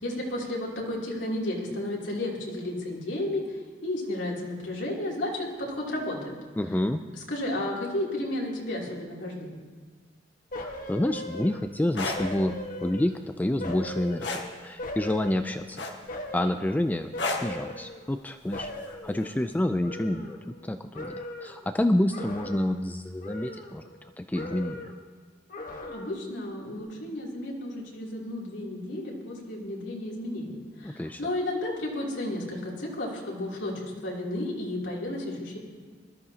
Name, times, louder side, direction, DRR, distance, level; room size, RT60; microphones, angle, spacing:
voice 1, 0.0-6.3 7.1-9.5 25.8-35.6, left 1 dB, 85° left, -4 dB, 3.0 m, -33 dB
voice 2, 6.6-7.0 10.6-15.9 16.3-20.4 20.6-23.8 24.2-24.9 30.8-31.2, left 1 dB, 10° left, 8 dB, 0.3 m, -28 dB
sound 1, 10.5-11.8 12.2-13.2 13.6-15.7 16.1-16.7 17.1-18.3 18.5-20.7 20.9-21.6 22.1-22.9 23.2-24.1 24.3-25.1 25.5-26.3 26.7-26.8, left 1 dB, 50° left, 1.3 m, -39 dB
sound 2, 11.8-12.2 14.2-14.5 15.8-16.2 17.2-17.5 18.9-19.1, left 3 dB, 70° left, 1.4 m, -30 dB
20.5 x 13.5 x 2.8 m, 1.4 s
head